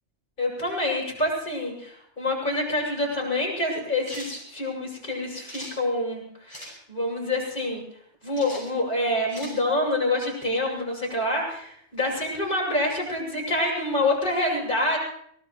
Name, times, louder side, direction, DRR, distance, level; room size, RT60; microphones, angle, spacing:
voice 1, 0.4-7.8 8.2-15.0, left 1 dB, 45° left, -3 dB, 6.7 m, -27 dB
sound 1, 4.0-4.3 5.4-5.7 6.5-6.7 8.4-8.6 9.3-9.6, equal, 15° right, 7.2 m, -40 dB
23.5 x 19.0 x 3.1 m, 0.68 s
omnidirectional pair, 1.3 m